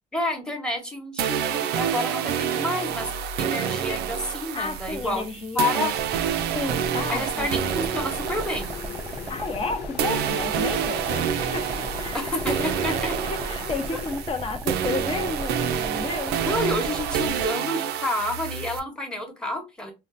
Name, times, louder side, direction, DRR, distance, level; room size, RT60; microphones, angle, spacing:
voice 1, 0.1-5.2 5.5-5.9 7.1-8.7 12.1-13.2 16.4-19.9, left 2 dB, 5° left, 1.0 m, -29 dB
sound 1, 1.2-9.7 10.0-18.8, right 8 dB, 80° right, 0.5 m, -28 dB
voice 2, 4.5-5.9 6.5-7.7 9.3-16.4, left 4 dB, 35° left, 0.8 m, -32 dB
sound 2, 5.9-17.5, right 2 dB, 15° right, 0.4 m, -37 dB
sound 3, 8.1-14.8, left 7 dB, 80° left, 0.6 m, -39 dB
3.7 x 2.2 x 2.5 m
cardioid pair, 110°, 17 cm